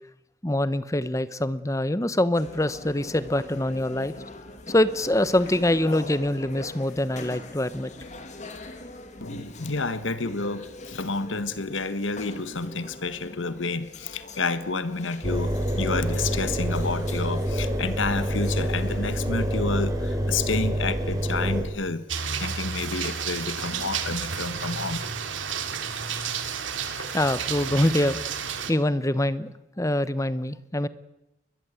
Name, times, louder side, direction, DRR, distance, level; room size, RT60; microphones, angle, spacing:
voice 1, 0.4-4.1 4.7-7.9 26.9-28.2 28.7-30.9, left 1 dB, 15° left, 15 dB, 0.9 m, -24 dB
sound 1, 2.3-19.2, left 2 dB, 40° left, 2.7 m, -43 dB
voice 2, 9.2-22.0 22.4-25.0, left 3 dB, 90° left, 13 dB, 1.5 m, -30 dB
Engine, 15.2-21.6, equal, 20° right, 4.3 m, -27 dB
sound 2, 22.1-28.7, right 6 dB, 90° right, 2.6 m, -31 dB
21.5 x 21.5 x 8.3 m, 0.95 s
head